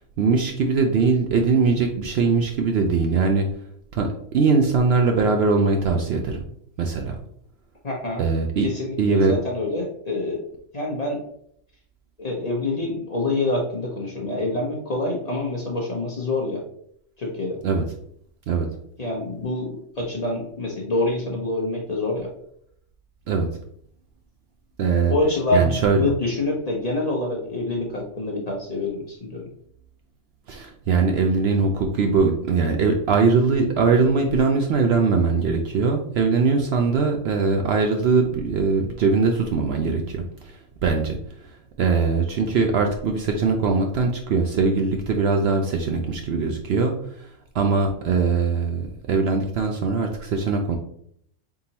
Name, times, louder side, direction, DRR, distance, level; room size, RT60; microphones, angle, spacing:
voice 1, 0.2-3.5 3.9-6.4 6.8-7.2 8.2-8.7 9.0-9.4 17.6-17.8 18.5-18.7 23.3-23.5 24.8-25.1 25.5-26.1 30.5-41.2 41.4-47.3 47.5-50.8, right 4 dB, 65° right, 3 dB, 0.7 m, -21 dB
voice 2, 7.8-8.2 8.6-10.4 10.7-11.2 12.2-16.6 17.2-17.6 19.0-22.3 25.0-29.4, left 2 dB, 35° left, -1 dB, 0.7 m, -26 dB
4.1 x 3.7 x 2.8 m, 0.68 s
omnidirectional pair, 1.3 m